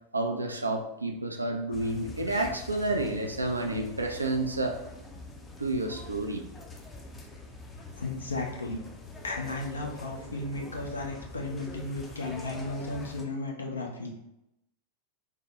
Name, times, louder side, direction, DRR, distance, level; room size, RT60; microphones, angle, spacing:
voice 1, 0.1-4.8 5.6-6.4, right 2 dB, 80° right, 3 dB, 0.4 m, -30 dB
sound 1, 1.7-13.2, left 2 dB, 15° left, 0.5 m, -44 dB
voice 2, 8.0-8.8 9.2-14.3, left 2 dB, 75° left, 1 dB, 0.6 m, -35 dB
3.6 x 2.1 x 2.9 m, 0.86 s
figure-of-eight pair, 90°, 0 cm